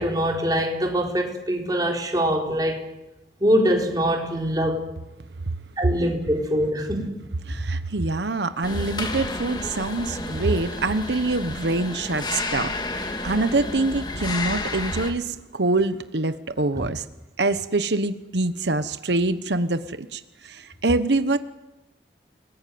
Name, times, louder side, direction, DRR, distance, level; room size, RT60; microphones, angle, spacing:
voice 1, 0.0-2.8 3.4-4.8 5.8-7.1 16.8-16.9, equal, 20° right, 1 dB, 4.2 m, -23 dB
voice 2, 7.5-17.0 17.4-21.4, right 2 dB, 85° right, 11 dB, 1.1 m, -25 dB
sound 1, 8.6-15.1, left 2 dB, 25° left, 2.3 m, -31 dB
29.5 x 20.0 x 9.4 m, 1.0 s
head